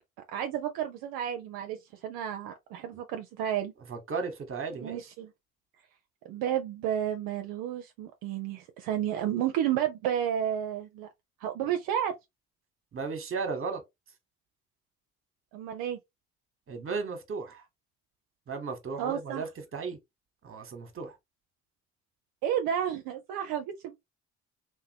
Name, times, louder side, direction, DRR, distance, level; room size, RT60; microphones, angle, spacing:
voice 1, 0.3-3.7 4.8-5.3 6.2-11.1 11.4-12.1 15.5-16.0 19.0-19.5 22.4-24.0, right 10 dB, 70° right, 0.5 m, -31 dB
voice 2, 3.9-5.0 12.9-13.8 16.7-17.6 18.5-20.0 20.4-21.1, right 4 dB, 35° right, 1.0 m, -35 dB
2.9 x 2.3 x 2.7 m
hypercardioid pair, 50°, 37 cm